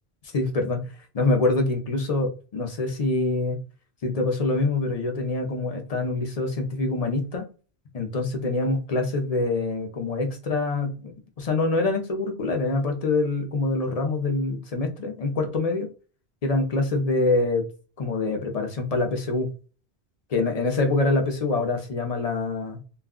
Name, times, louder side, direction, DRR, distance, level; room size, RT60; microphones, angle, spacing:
voice 1, 0.3-0.8 1.1-3.6 4.0-7.4 7.9-15.9 16.4-17.6 18.0-19.5 20.3-22.8, left 3 dB, 40° left, 0.6 m, -25 dB
2.4 x 2.2 x 3.5 m
omnidirectional pair, 1.1 m